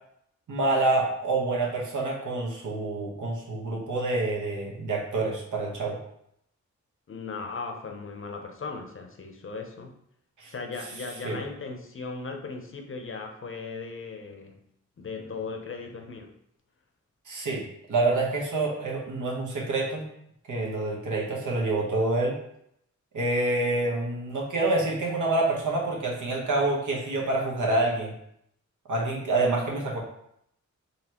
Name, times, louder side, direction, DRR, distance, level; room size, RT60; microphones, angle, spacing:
voice 1, 0.5-6.0 10.4-10.5 11.2-11.4 17.3-17.6 17.9-20.1 20.5-22.3 23.1-28.1 28.9-30.0, right 2 dB, 85° right, -2 dB, 1.1 m, -27 dB
voice 2, 7.1-9.9 10.5-14.6 15.0-16.3, left 4 dB, 45° left, 4 dB, 0.7 m, -37 dB
4.1 x 3.1 x 2.9 m, 0.74 s
wide cardioid pair, 85°, 30 cm